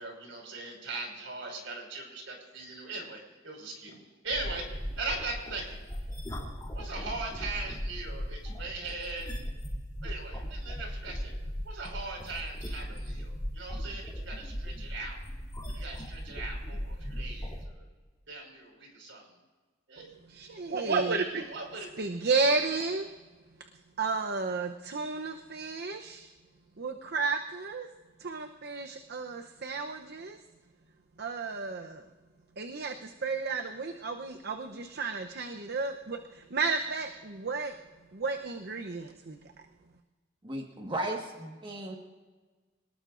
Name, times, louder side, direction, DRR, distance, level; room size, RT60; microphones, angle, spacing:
voice 1, 0.0-4.6 5.0-5.8 6.7-9.3 10.0-11.4 11.6-15.2 15.6-17.9 18.3-19.3 19.9-20.1 20.5-20.6 21.3-22.0, right 3 dB, 80° right, 1 dB, 5.2 m, -40 dB
sound 1, 4.3-17.7, equal, 20° left, 3.2 m, -38 dB
voice 2, 20.0-21.5 22.0-23.1 24.0-26.3 26.8-27.9 28.2-30.4 31.2-32.0 32.6-37.7 38.1-39.4, right 4 dB, 55° right, 5 dB, 0.8 m, -32 dB
voice 3, 40.4-42.0, right 1 dB, 25° right, 1 dB, 1.5 m, -35 dB
26.5 x 19.0 x 2.6 m, 1.3 s
head